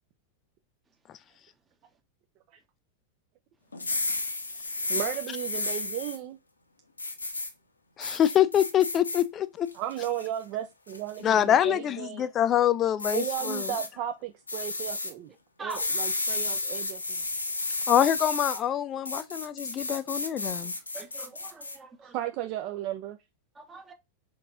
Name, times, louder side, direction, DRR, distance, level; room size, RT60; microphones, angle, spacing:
sound 1, 3.7-6.2 7.0-7.5 8.0-9.2 9.7-10.3 10.9-11.2 13.0-13.9 14.5-15.1 15.7-18.6 19.0-21.8, left 2 dB, 80° left, 0.8 m, -32 dB
voice 1, 4.9-6.4 9.8-12.3 13.1-15.3 15.6-17.3 22.0-23.2, right 12 dB, 40° right, 0.5 m, -35 dB
voice 2, 8.0-9.7 11.2-13.7 17.9-20.7, left 10 dB, 30° left, 0.5 m, -25 dB
voice 3, 15.6-15.9 20.9-22.2 23.6-23.9, right 3 dB, 15° right, 0.8 m, -42 dB
4.5 x 3.9 x 2.4 m
figure-of-eight pair, 90°, 0 cm